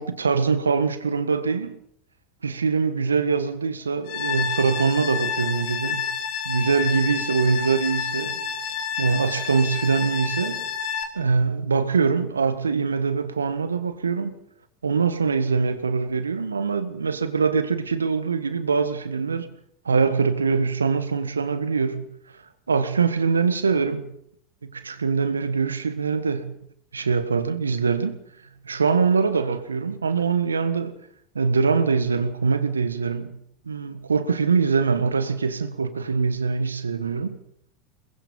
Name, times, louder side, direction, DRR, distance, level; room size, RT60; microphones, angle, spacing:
voice 1, 0.0-1.8 2.4-6.0 6.4-8.4 9.0-10.6 11.1-14.3 14.8-19.5 19.8-22.0 22.7-24.1 24.7-26.5 26.9-28.2 28.6-30.9 31.3-33.4 33.6-37.4, right 5 dB, 90° right, 1.6 m, -23 dB
sound 1, 4.1-11.0, left 7 dB, 60° left, 3.9 m, -29 dB
23.0 x 20.5 x 5.5 m
hypercardioid pair, 85°, 0 cm